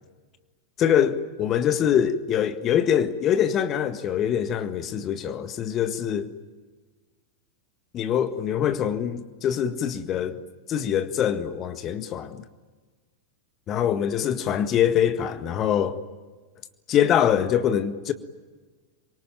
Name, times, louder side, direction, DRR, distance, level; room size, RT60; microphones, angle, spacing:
voice 1, 0.8-6.3 7.9-10.4 10.7-12.4 13.7-16.0 16.9-18.1, left 9 dB, 30° left, 1.7 m, -24 dB
26.5 x 24.0 x 9.1 m
figure-of-eight pair, 90°, 0 cm